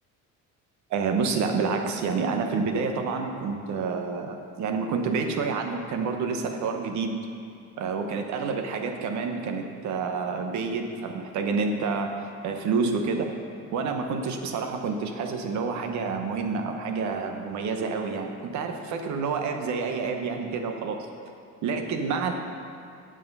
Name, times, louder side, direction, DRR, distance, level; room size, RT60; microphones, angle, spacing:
voice 1, 0.9-7.2 7.8-12.1 12.4-13.3 13.7-21.1 21.6-22.3, right 4 dB, 65° right, 4 dB, 1.1 m, -28 dB
8.5 x 7.5 x 5.5 m, 2.4 s
cardioid pair, 130°, 30 cm